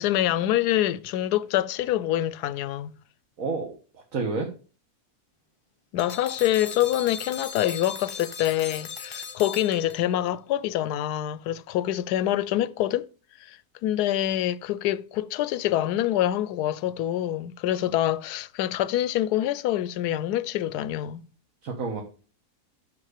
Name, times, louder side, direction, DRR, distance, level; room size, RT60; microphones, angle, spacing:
voice 1, 0.0-2.9 5.9-13.1 13.4-21.2, left 13 dB, 85° left, 1.1 m, -26 dB
voice 2, 3.4-3.7 3.9-4.5 21.6-22.0, right 4 dB, 60° right, 1.7 m, -29 dB
sound 1, 6.0-10.3, left 6 dB, 35° left, 0.5 m, -38 dB
6.6 x 5.9 x 6.5 m
omnidirectional pair, 1.6 m